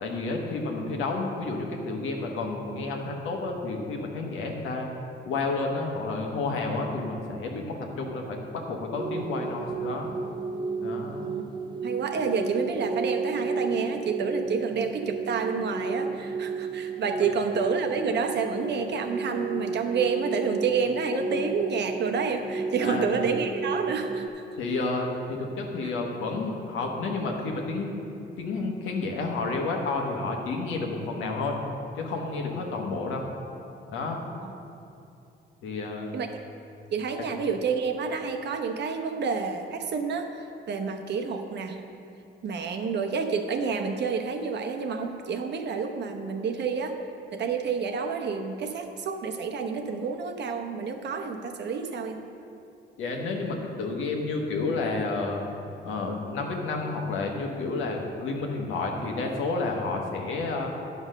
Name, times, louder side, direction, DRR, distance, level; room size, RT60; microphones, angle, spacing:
voice 1, 0.0-4.9 5.3-10.1 10.8-11.2 22.8-23.1 24.6-27.9 28.4-31.6 31.9-33.2 33.9-34.2 35.6-36.1 53.0-55.4 55.8-60.7, left 3 dB, 85° left, 1 dB, 1.3 m, -30 dB
sound 1, 9.0-24.3, right 4 dB, 25° right, 0.5 m, -32 dB
voice 2, 11.8-24.4 25.8-25.9 34.4-34.5 36.1-36.4 36.9-41.8 42.4-47.0 47.3-52.2, right 5 dB, 60° right, 5 dB, 0.9 m, -29 dB
9.6 x 5.3 x 6.5 m, 2.7 s
cardioid pair, 90°, 20 cm